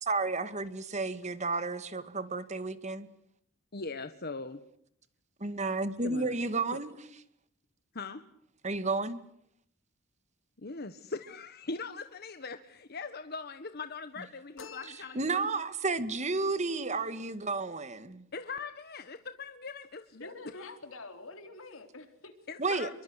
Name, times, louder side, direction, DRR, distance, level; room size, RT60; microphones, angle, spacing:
voice 1, 0.0-3.1 5.4-7.0 8.6-9.2 15.2-18.2 22.6-22.9, right 3 dB, 35° right, 12 dB, 2.0 m, -32 dB
voice 2, 3.7-4.6 6.0-6.3 7.9-8.2 10.6-15.4 18.3-20.7 22.5-23.0, left 4 dB, 50° left, 10 dB, 1.3 m, -41 dB
sound 1, 14.6-15.8, left 5 dB, 70° left, 3.5 m, -50 dB
voice 3, 20.1-22.4, left 3 dB, 90° left, 7 dB, 3.8 m, -46 dB
29.0 x 23.5 x 8.2 m, 0.71 s
head